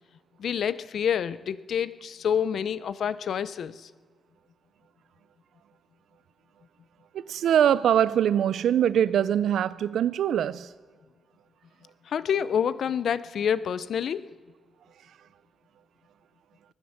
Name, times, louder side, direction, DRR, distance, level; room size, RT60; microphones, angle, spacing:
voice 1, 0.4-3.9 12.0-14.3, left 8 dB, 60° left, 0.5 m, -28 dB
voice 2, 7.1-10.7, right 9 dB, 85° right, 0.5 m, -23 dB
22.0 x 10.0 x 6.6 m
wide cardioid pair, 170°, 0 cm